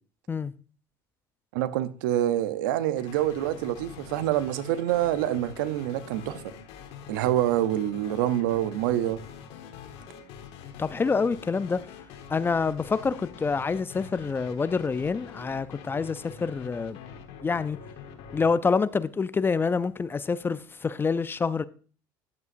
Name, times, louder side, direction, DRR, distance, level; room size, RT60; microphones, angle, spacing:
voice 1, 1.5-6.4 7.1-9.2, right 12 dB, 80° right, 0.6 m, -26 dB
sound 1, 3.0-18.5, left 7 dB, 65° left, 1.2 m, -45 dB
voice 2, 10.8-11.8 12.3-17.0 17.4-17.8 18.3-21.6, left 5 dB, 20° left, 0.4 m, -27 dB
10.5 x 8.0 x 2.6 m
hypercardioid pair, 85°, 11 cm